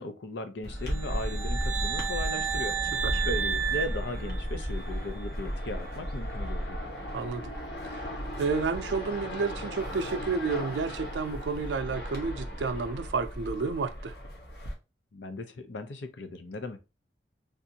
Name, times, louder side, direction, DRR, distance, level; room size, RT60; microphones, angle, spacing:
voice 1, 0.0-6.9 15.1-16.8, left 2 dB, 85° left, 0.6 m, -37 dB
sound 1, 0.6-14.7, equal, 65° left, 1.1 m, -35 dB
sound 2, 0.9-4.9, right 8 dB, 15° right, 0.4 m, -32 dB
voice 2, 7.1-7.5 7.9-8.1 8.4-14.1, right 4 dB, 85° right, 0.4 m, -31 dB
3.5 x 2.6 x 2.8 m
head